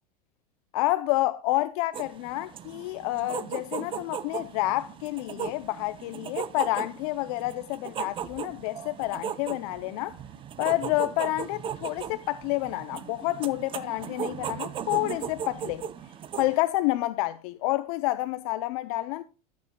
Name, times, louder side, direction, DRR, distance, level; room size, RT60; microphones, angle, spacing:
voice 1, 0.7-10.2 10.6-15.8 16.3-19.2, left 17 dB, 60° left, 0.5 m, -29 dB
sound 1, 1.9-16.6, right 8 dB, 25° right, 0.5 m, -37 dB
13.5 x 8.4 x 2.2 m
supercardioid pair, 130°, 20 cm